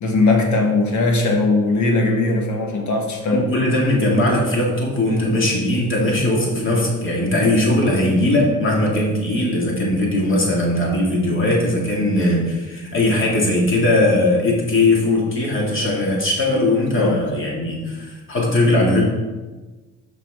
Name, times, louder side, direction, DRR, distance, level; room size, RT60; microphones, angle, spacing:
voice 1, 0.0-3.4 17.0-17.2, left 3 dB, 70° left, 2 dB, 1.4 m, -19 dB
voice 2, 3.3-19.1, left 1 dB, 40° left, -2 dB, 2.2 m, -19 dB
6.1 x 5.8 x 3.6 m, 1.2 s
cardioid pair, 90°, 30 cm